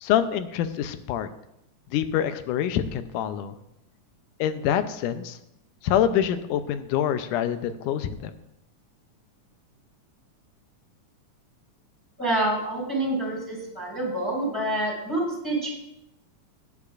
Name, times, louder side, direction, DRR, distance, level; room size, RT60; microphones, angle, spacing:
voice 1, 0.0-1.3 1.9-3.6 4.4-5.4 5.8-8.3, left 10 dB, 85° left, 11 dB, 2.2 m, -26 dB
voice 2, 12.2-15.7, right 1 dB, 5° right, -3 dB, 4.6 m, -27 dB
17.5 x 9.7 x 2.5 m, 0.83 s
omnidirectional pair, 3.6 m